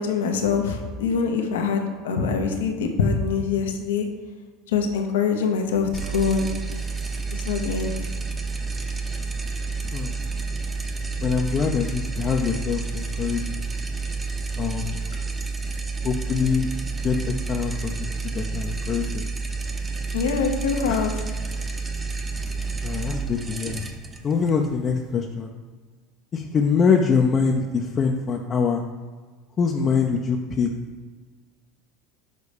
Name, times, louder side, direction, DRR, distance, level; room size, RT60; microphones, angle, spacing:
voice 1, 0.0-4.1 4.7-6.5 7.3-7.9 20.1-21.1, left 5 dB, 80° left, 4 dB, 1.0 m, -24 dB
sound 1, 5.9-25.2, right 4 dB, 20° right, 1.0 m, -30 dB
voice 2, 11.2-13.6 14.6-15.0 16.0-16.7 17.0-19.2 20.9-21.1 22.8-23.8 24.2-25.5 26.3-28.8 29.6-30.7, left 5 dB, 35° left, 2 dB, 0.7 m, -24 dB
6.7 x 4.1 x 5.1 m, 1.5 s
hypercardioid pair, 85°, 0 cm